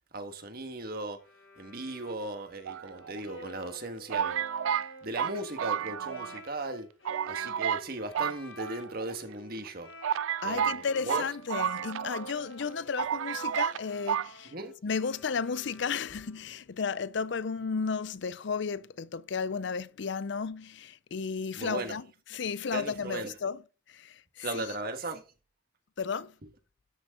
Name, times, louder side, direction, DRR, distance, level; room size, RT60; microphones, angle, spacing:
voice 1, 0.1-1.2 1.6-4.4 5.0-6.9 7.3-9.9 10.4-11.3 14.5-14.7 21.5-22.0 22.7-23.3 24.4-25.2, right 2 dB, 50° right, 1.6 m, -37 dB
Bowed string instrument, 1.2-10.5 10.8-16.6, equal, 80° left, 4.9 m, -50 dB
sound 1, 2.7-3.4 4.1-6.4 6.7-6.8 7.1-7.9 8.1-9.1 9.7-9.8 10.0-12.3 12.6-12.7 13.0-13.8 14.1-14.3, right 8 dB, 80° right, 0.3 m, -31 dB
voice 2, 10.4-14.5 14.8-22.0 22.3-23.6 23.9-24.6 26.0-26.3, left 5 dB, 60° left, 0.5 m, -33 dB
13.0 x 6.3 x 3.8 m
head